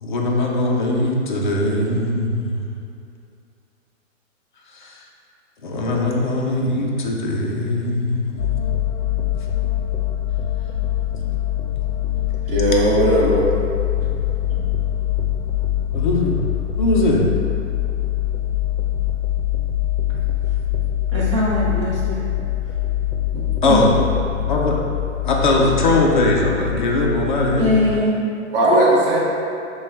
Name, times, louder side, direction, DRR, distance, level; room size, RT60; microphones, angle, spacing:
voice 1, 0.0-2.6 4.8-4.9 5.6-8.7 15.9-16.3 16.8-17.2 23.6-23.9 24.4-24.9 25.2-27.7, left 2 dB, 40° left, -2 dB, 0.4 m, -20 dB
sound 1, 8.4-28.0, left 12 dB, 85° left, 0.6 m, -23 dB
voice 2, 12.5-13.4 28.5-29.2, right 1 dB, 45° right, -7 dB, 1.0 m, -16 dB
voice 3, 21.1-22.2 23.6-23.8 27.6-28.2, left 1 dB, 25° right, -7 dB, 0.5 m, -21 dB
5.8 x 2.3 x 3.4 m, 2.5 s
hypercardioid pair, 175°, 40 cm